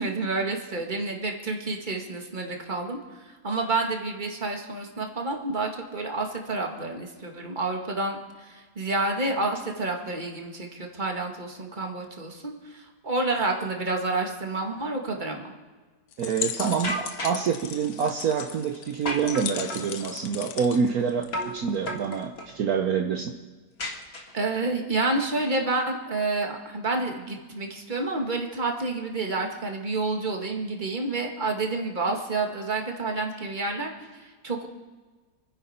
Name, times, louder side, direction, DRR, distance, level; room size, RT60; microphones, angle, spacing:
voice 1, 0.0-3.0 3.2-15.5 24.3-34.7, right 3 dB, 30° right, 2 dB, 2.0 m, -29 dB
sound 1, 16.1-21.8, left 9 dB, 70° left, 1.3 m, -37 dB
voice 2, 16.2-23.4, right 6 dB, 65° right, 4 dB, 1.3 m, -27 dB
sound 2, 16.8-17.5 19.1-19.9 21.3-21.6 21.9-22.5 23.8-24.6, equal, 40° left, 1.9 m, -33 dB
28.0 x 10.5 x 4.3 m, 1.4 s
omnidirectional pair, 1.7 m